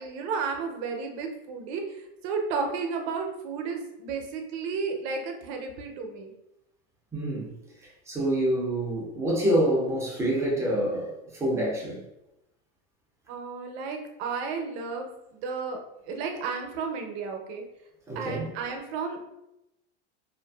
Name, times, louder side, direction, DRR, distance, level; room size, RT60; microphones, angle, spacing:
voice 1, 0.0-6.3 13.3-15.8 16.1-17.6 18.1-19.2, right 5 dB, 60° right, 3 dB, 0.6 m, -33 dB
voice 2, 7.1-7.6 7.8-12.1 18.1-18.5, right 1 dB, 10° right, -4 dB, 0.3 m, -27 dB
2.5 x 2.3 x 2.2 m, 0.87 s
supercardioid pair, 140°, 36 cm